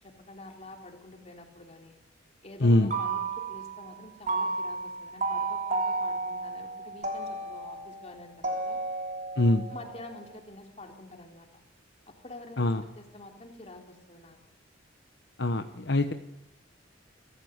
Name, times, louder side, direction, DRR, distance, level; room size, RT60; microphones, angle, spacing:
voice 1, 0.0-2.0 2.4-8.8 9.7-11.6 12.1-12.7 13.0-14.4, left 2 dB, 35° left, 2 dB, 3.4 m, -47 dB
voice 2, 2.6-2.9 9.4-9.7 12.6-12.8 15.4-16.1, left 1 dB, 60° left, 7 dB, 1.0 m, -23 dB
sound 1, 2.7-3.9 4.3-10.4, right 3 dB, 40° right, 3.1 m, -33 dB
25.5 x 14.5 x 8.1 m, 0.91 s
head